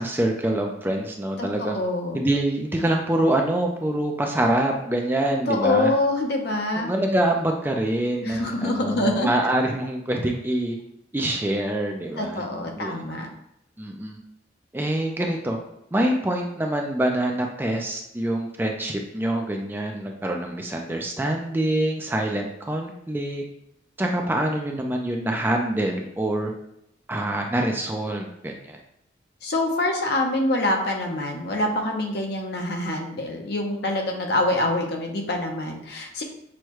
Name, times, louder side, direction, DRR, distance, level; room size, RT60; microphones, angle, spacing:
voice 1, 0.0-1.8 2.1-5.9 6.7-10.8 11.1-12.4 12.8-13.0 13.8-14.2 14.7-15.6 15.9-23.4 24.0-26.5 27.1-28.8, right 1 dB, 10° right, 2 dB, 0.4 m, -25 dB
voice 2, 1.4-2.2 5.5-6.9 8.2-9.3 12.2-13.3 29.4-36.2, left 2 dB, 60° left, 2 dB, 0.7 m, -25 dB
6.2 x 2.2 x 3.0 m, 0.77 s
head